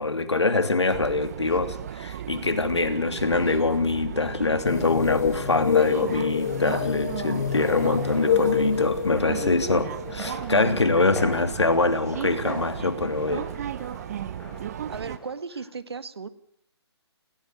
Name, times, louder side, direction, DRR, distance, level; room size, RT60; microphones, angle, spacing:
voice 1, 0.0-13.5, left 3 dB, 80° left, 9 dB, 3.0 m, -24 dB
sound 1, 0.9-15.2, right 10 dB, 35° right, 0.9 m, -35 dB
sound 2, 4.6-11.1, left 8 dB, 40° left, 1.3 m, -27 dB
sound 3, 7.5-15.3, left 2 dB, 5° left, 4.6 m, -41 dB
voice 2, 14.9-16.3, right 5 dB, 65° right, 13 dB, 1.7 m, -36 dB
19.5 x 17.5 x 9.9 m, 0.68 s
figure-of-eight pair, 145°, 14 cm